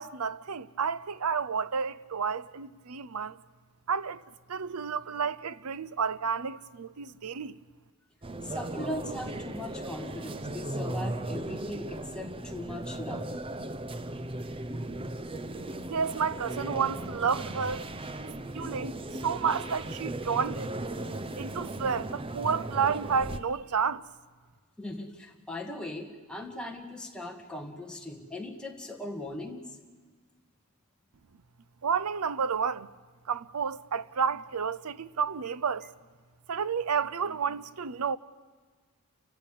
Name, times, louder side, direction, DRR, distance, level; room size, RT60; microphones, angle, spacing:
voice 1, 0.0-3.4 3.9-4.2 4.5-7.6 15.9-17.8 18.5-20.8 21.4-24.0 31.8-32.9 33.3-35.9 36.5-38.2, right 6 dB, 80° right, 0.7 m, -31 dB
sound 1, 8.2-23.4, right 1 dB, 25° right, 0.7 m, -37 dB
voice 2, 8.4-13.3 24.8-29.7, left 1 dB, 5° left, 2.0 m, -39 dB
30.0 x 15.0 x 8.6 m
head